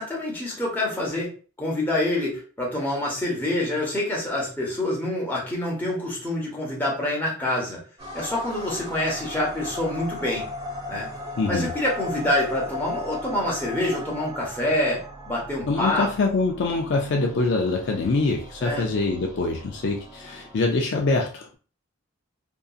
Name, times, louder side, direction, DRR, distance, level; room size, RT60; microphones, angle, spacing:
voice 1, 0.0-1.3 1.6-7.8 8.1-10.4 10.9-11.1 11.5-16.1 18.6-18.8, left 1 dB, 10° left, -4 dB, 1.0 m, -26 dB
sound 1, 8.0-20.6, left 1 dB, 30° right, 1.1 m, -37 dB
voice 2, 11.4-11.7 15.7-21.5, left 3 dB, 55° left, 1 dB, 0.4 m, -24 dB
2.7 x 2.5 x 2.4 m, 0.38 s
head